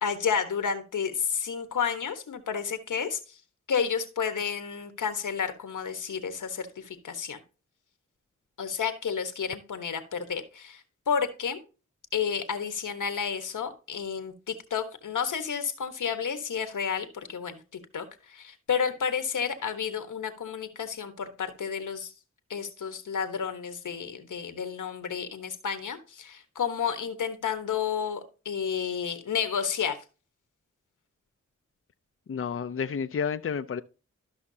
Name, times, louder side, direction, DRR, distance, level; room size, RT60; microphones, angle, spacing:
voice 1, 0.0-3.4 3.7-7.4 8.6-11.6 12.1-22.1 22.5-30.0, left 7 dB, 85° left, 1.3 m, -31 dB
voice 2, 32.3-33.8, left 6 dB, 45° left, 0.6 m, -30 dB
13.0 x 5.8 x 2.8 m
cardioid pair, 50°, 30 cm